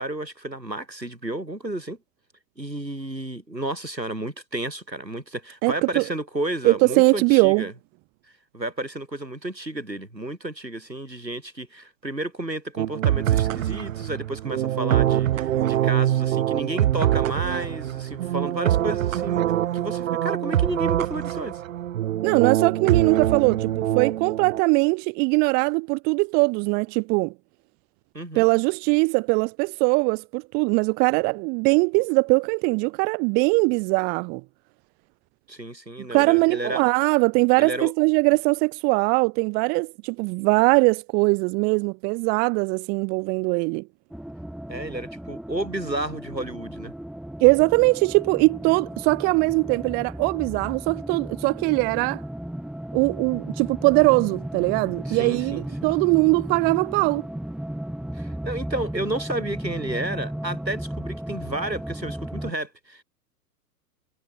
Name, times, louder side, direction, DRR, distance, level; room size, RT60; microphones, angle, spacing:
voice 1, 0.0-2.0 2.6-7.7 8.5-19.4 19.7-21.6 28.1-28.5 35.5-36.8 37.6-37.9 44.7-46.9 55.1-55.6 58.1-63.0, right 1 dB, 85° right, 7.9 m, -32 dB
voice 2, 5.6-6.0 6.6-7.7 22.2-27.3 28.3-34.4 36.1-43.9 47.4-52.2 52.9-57.3, right 32 dB, 20° right, 0.7 m, -21 dB
sound 1, 12.8-24.6, right 12 dB, 50° right, 1.3 m, -24 dB
sound 2, 44.1-62.5, right 1 dB, ahead, 7.0 m, -35 dB
figure-of-eight pair, 105°, 49 cm